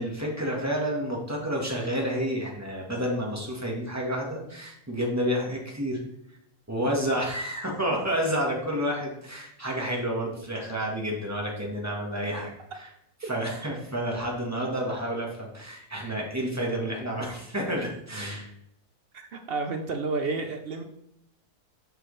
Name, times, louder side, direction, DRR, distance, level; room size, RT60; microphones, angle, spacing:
voice 1, 0.0-6.0 6.7-12.9 13.2-18.5, equal, 10° right, -2 dB, 1.3 m, -30 dB
voice 2, 19.1-20.8, right 3 dB, 60° right, 5 dB, 0.6 m, -30 dB
6.8 x 6.0 x 3.2 m, 0.79 s
omnidirectional pair, 1.6 m